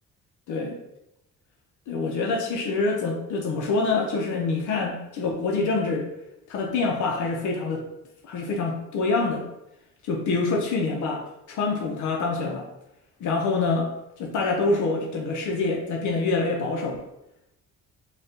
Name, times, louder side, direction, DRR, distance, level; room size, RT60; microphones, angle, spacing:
voice 1, 0.5-0.8 1.9-6.1 6.5-7.8 8.2-9.5 10.0-12.7 13.2-13.9 14.2-17.0, left 3 dB, 75° left, 0 dB, 0.7 m, -26 dB
4.0 x 2.3 x 3.6 m, 0.86 s
cardioid pair, 90°, 30 cm